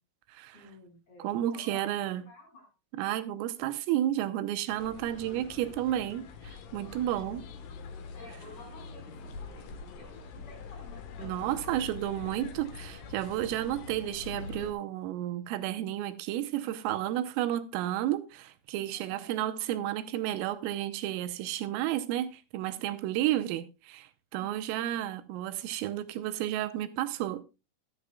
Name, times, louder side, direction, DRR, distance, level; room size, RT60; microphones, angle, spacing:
voice 1, 0.5-1.9 2.1-2.7 6.8-7.2 7.5-7.6 8.1-11.9 12.4-12.7 18.9-19.3 24.3-24.8, left 2 dB, 30° left, 5.1 m, -53 dB
voice 2, 1.2-2.2 2.9-7.4 11.2-27.4, right 13 dB, 85° right, 3.4 m, -32 dB
sound 1, 4.7-14.7, left 4 dB, 80° left, 1.9 m, -44 dB
15.5 x 12.0 x 2.3 m
omnidirectional pair, 5.9 m